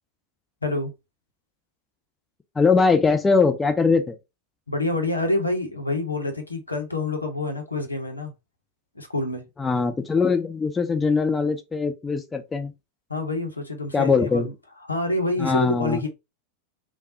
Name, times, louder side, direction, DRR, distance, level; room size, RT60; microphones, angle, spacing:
voice 1, 0.6-0.9 4.7-8.3 8.9-9.5 13.1-14.5 14.9-16.1, left 2 dB, 80° left, 0.7 m, -27 dB
voice 2, 2.6-4.2 9.6-12.7 13.9-14.5 15.4-16.1, left 4 dB, 15° left, 0.4 m, -21 dB
3.2 x 2.3 x 2.8 m
figure-of-eight pair, 90°, 0 cm